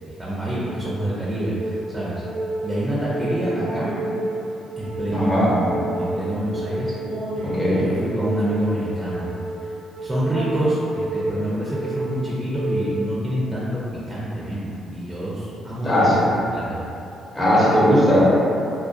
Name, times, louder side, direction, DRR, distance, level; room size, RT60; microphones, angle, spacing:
voice 1, 0.2-2.2 2.6-3.9 4.8-6.9 7.3-9.3 10.0-16.2 16.5-16.8, right 1 dB, 10° right, -8 dB, 0.4 m, -27 dB
sound 1, 0.5-13.5, right 1 dB, 75° right, 0.3 m, -30 dB
voice 2, 5.1-5.5 7.4-7.8 15.8-16.2 17.3-18.2, equal, 20° left, -10 dB, 0.7 m, -18 dB
2.4 x 2.2 x 2.3 m, 2.8 s
cardioid pair, 90°, 0 cm